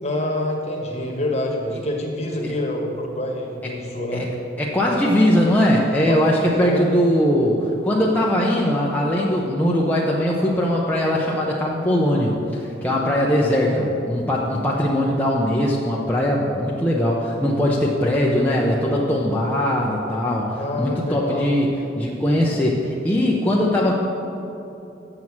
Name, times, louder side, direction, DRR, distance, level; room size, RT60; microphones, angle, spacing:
voice 1, 0.0-4.3 6.1-6.8 13.6-13.8 20.6-21.5, left 1 dB, 35° left, 0 dB, 1.2 m, -27 dB
voice 2, 4.6-23.9, equal, 10° left, -4 dB, 0.6 m, -20 dB
7.6 x 6.2 x 7.2 m, 2.9 s
head